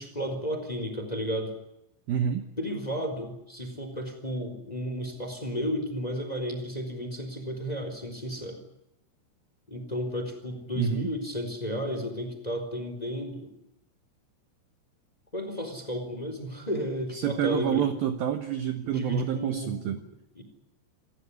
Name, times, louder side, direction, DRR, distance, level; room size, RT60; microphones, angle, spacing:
voice 1, 0.0-1.5 2.6-8.6 9.7-13.5 15.3-17.9 18.9-20.0 20.3-20.4, equal, 10° left, 7 dB, 3.4 m, -33 dB
voice 2, 2.1-2.5 10.8-11.1 17.1-20.0, right 9 dB, 70° right, 8 dB, 2.5 m, -28 dB
28.0 x 15.0 x 9.7 m, 0.84 s
omnidirectional pair, 5.7 m